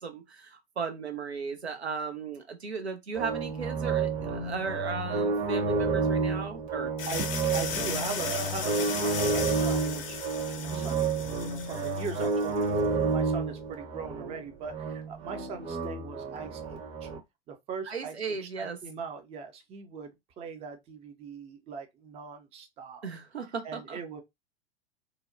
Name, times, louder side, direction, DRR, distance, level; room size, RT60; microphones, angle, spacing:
voice 1, 0.0-6.9 10.7-11.0 17.9-18.8 23.0-24.0, right 5 dB, 85° right, 0.7 m, -36 dB
sound 1, 3.1-17.2, right 4 dB, 40° right, 0.9 m, -30 dB
sound 2, 7.0-12.7, left 7 dB, 60° left, 0.7 m, -36 dB
voice 2, 7.0-10.2 10.5-17.1 17.5-23.1 23.6-24.2, right 5 dB, 20° right, 0.4 m, -40 dB
2.6 x 2.1 x 2.5 m
figure-of-eight pair, 90°, 32 cm